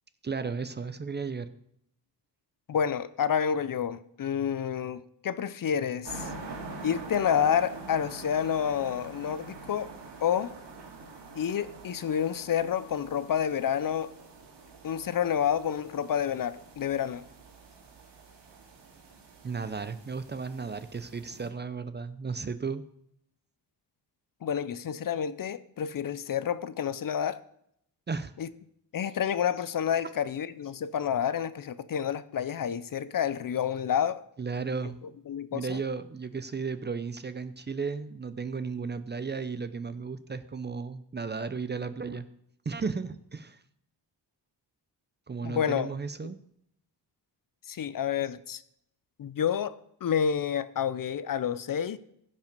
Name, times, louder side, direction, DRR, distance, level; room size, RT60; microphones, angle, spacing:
voice 1, 0.2-1.5 19.4-22.8 28.1-28.3 34.4-35.0 35.5-42.3 42.7-43.6 45.3-46.4, right 5 dB, 25° right, 0.5 m, -34 dB
voice 2, 2.7-6.3 6.8-9.9 10.2-10.5 11.3-14.1 14.8-17.3 24.4-27.4 28.4-28.5 28.9-34.2 35.3-35.8 45.4-45.9 47.7-48.6 49.2-52.0, left 8 dB, 50° left, 0.6 m, -29 dB
sound 1, 6.1-21.5, right 3 dB, 70° right, 2.4 m, -46 dB
15.5 x 5.6 x 5.3 m
wide cardioid pair, 120°, 43 cm